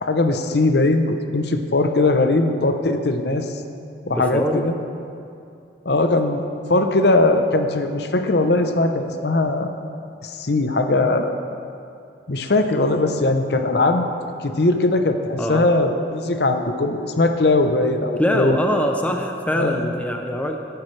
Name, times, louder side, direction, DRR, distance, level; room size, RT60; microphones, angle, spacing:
voice 1, 0.0-3.6 4.1-4.7 5.8-6.4 6.7-9.7 10.2-11.4 12.3-14.1 14.4-18.6 19.6-19.9, left 2 dB, 60° left, 6 dB, 0.7 m, -20 dB
voice 2, 4.1-4.6 15.4-15.6 18.2-20.6, equal, 10° left, 3 dB, 0.6 m, -23 dB
17.0 x 10.5 x 3.3 m, 2.5 s
head